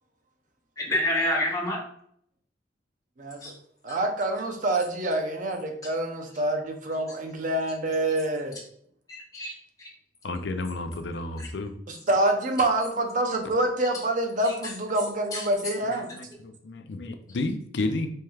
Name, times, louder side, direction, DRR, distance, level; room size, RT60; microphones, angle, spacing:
voice 1, 0.8-1.8 3.4-3.5 9.1-9.9 11.4-11.5 14.4-14.5 15.3-15.4, left 1 dB, 20° left, -3 dB, 1.0 m, -28 dB
voice 2, 3.2-3.5 3.8-8.5 11.9-16.1, right 1 dB, 45° right, 3 dB, 0.6 m, -26 dB
voice 3, 10.2-11.7 15.8-18.1, left 2 dB, 75° left, 7 dB, 0.5 m, -32 dB
4.3 x 3.2 x 2.3 m, 0.66 s
head